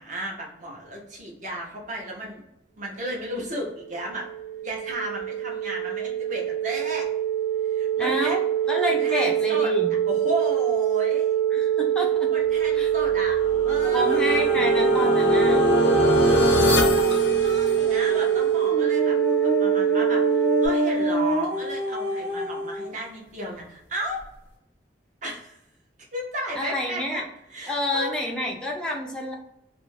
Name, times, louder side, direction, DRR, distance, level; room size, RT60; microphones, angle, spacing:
voice 1, 0.0-2.4 2.8-4.3 4.6-7.1 7.6-8.4 8.8-9.7 10.1-11.4 12.3-13.4 13.7-14.2 15.9-16.6 16.8-24.2 25.2-25.6 26.1-27.2 27.5-28.1, right 1 dB, 45° right, -2 dB, 0.8 m, -34 dB
sound 1, 3.6-20.7, right 11 dB, 70° right, 0.4 m, -24 dB
voice 2, 8.0-8.4 8.7-9.9 11.5-12.3 12.7-12.9 13.9-15.6 26.6-27.2 27.7-29.3, left 1 dB, 5° left, -2 dB, 0.4 m, -28 dB
sound 2, 13.0-18.2, left 1 dB, 85° left, 0.6 m, -26 dB
sound 3, 13.8-22.9 23.6-23.7, left 1 dB, 15° right, 1.0 m, -26 dB
2.5 x 2.1 x 3.1 m, 0.82 s
head